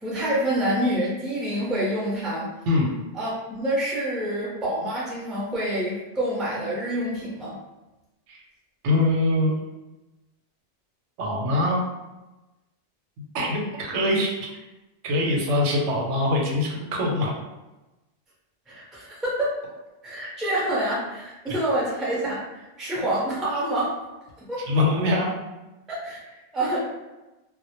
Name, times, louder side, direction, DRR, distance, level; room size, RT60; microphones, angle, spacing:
voice 1, 0.0-2.5 3.1-7.6 18.7-19.6 20.0-23.9 24.5-24.6 25.9-26.9, right 1 dB, ahead, -7 dB, 0.4 m, -27 dB
voice 2, 8.8-9.5 11.2-11.8 13.3-14.5 15.0-17.3 21.5-21.6 24.7-25.3, left 1 dB, 85° right, -1 dB, 0.9 m, -23 dB
2.1 x 2.0 x 2.8 m, 1.0 s
omnidirectional pair, 1.2 m